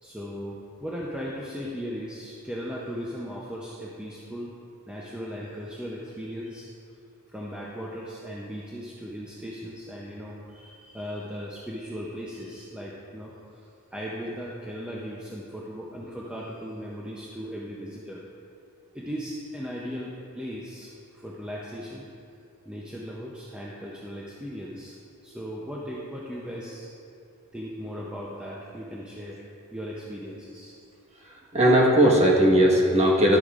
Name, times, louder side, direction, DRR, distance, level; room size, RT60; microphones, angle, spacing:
voice 1, 0.0-4.5 4.9-6.7 7.3-18.2 18.9-22.1 22.7-25.0 25.2-26.9 27.5-29.4 29.7-30.7, equal, 5° right, -5 dB, 0.6 m, -37 dB
voice 2, 31.2-33.4, equal, 30° right, -4 dB, 1.4 m, -19 dB
12.0 x 8.2 x 2.5 m, 2.6 s
head